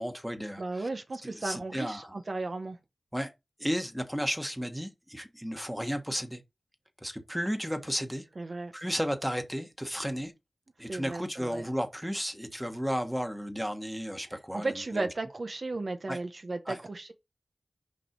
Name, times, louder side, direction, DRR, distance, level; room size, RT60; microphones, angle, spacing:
voice 1, 0.0-0.9 1.2-2.1 3.1-3.3 3.6-6.4 7.0-8.2 8.7-10.3 10.8-15.1 16.1-16.2 16.7-16.8, equal, ahead, 1.5 m, -33 dB
voice 2, 0.6-2.8 8.4-8.7 10.8-11.7 14.5-17.1, right 2 dB, 50° right, 0.9 m, -35 dB
6.7 x 5.3 x 4.5 m
wide cardioid pair, 85°, 0 cm